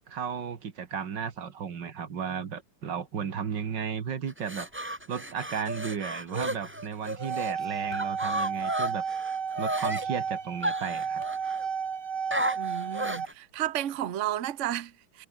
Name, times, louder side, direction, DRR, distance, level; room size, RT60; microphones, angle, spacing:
voice 1, 0.1-4.7 5.1-9.0 9.6-11.2 13.2-13.3, right 7 dB, 90° right, 2.5 m, -34 dB
sound 1, 4.3-7.5 7.9-10.1 10.6-11.6 12.3-13.3, right 1 dB, 5° right, 2.1 m, -33 dB
sound 2, 4.6-12.0, left 1 dB, 30° left, 6.7 m, -56 dB
sound 3, 7.0-13.3, right 6 dB, 75° right, 2.7 m, -33 dB
voice 2, 12.6-15.3, right 12 dB, 50° right, 1.1 m, -32 dB
omnidirectional pair, 1.9 m